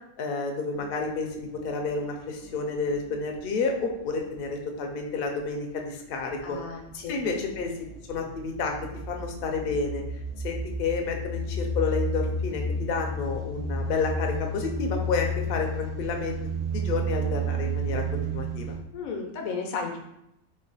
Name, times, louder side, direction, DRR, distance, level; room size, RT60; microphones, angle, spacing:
voice 1, 0.2-6.6 7.1-7.7 8.1-8.7 9.1-10.0 10.4-16.4 16.7-18.7, left 4 dB, 60° left, 2 dB, 0.6 m, -30 dB
sound 1, 0.7-1.0 1.3-4.4 6.4-6.5 7.2-18.8, right 1 dB, 75° right, 1.0 m, -31 dB
voice 2, 6.4-7.2 18.9-20.0, left 5 dB, 85° left, 3 dB, 1.1 m, -33 dB
3.2 x 2.1 x 3.8 m, 0.83 s
omnidirectional pair, 1.4 m